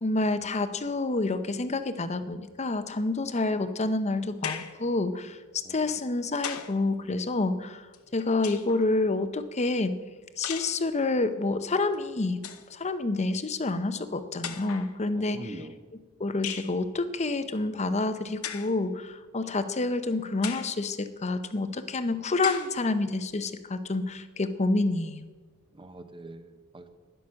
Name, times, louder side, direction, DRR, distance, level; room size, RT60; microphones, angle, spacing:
voice 1, 0.0-5.4 5.7-7.8 8.1-10.0 10.4-12.4 12.7-15.5 16.2-25.3, left 2 dB, 30° left, 11 dB, 0.7 m, -28 dB
sound 1, 4.4-4.8 5.9-6.8 7.9-8.8 10.4-10.8 11.9-12.0 12.3-12.7 13.7-13.8 14.4-14.9 16.4-16.8 18.4-18.8 19.4-19.5 20.4-20.8 21.4-21.5 22.4-22.8, left 9 dB, 70° left, 0.8 m, -37 dB
voice 2, 15.1-15.7 25.7-26.9, right 2 dB, 20° right, 9 dB, 0.8 m, -44 dB
11.5 x 10.0 x 6.3 m, 1.3 s
head